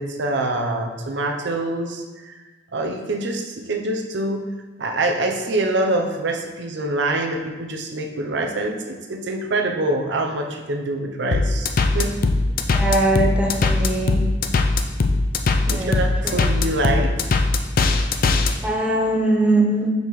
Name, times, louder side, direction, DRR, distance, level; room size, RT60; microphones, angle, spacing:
voice 1, 0.0-2.4 2.7-4.5 4.8-12.2 15.7-17.2, right 2 dB, 65° right, 3 dB, 0.7 m, -25 dB
sound 1, 11.3-18.5, left 3 dB, 50° left, 0.5 m, -19 dB
voice 2, 12.7-14.2 15.7-15.9 16.2-16.4 18.6-19.9, right 2 dB, 5° right, -2 dB, 0.8 m, -21 dB
6.4 x 5.3 x 3.1 m, 1.2 s
head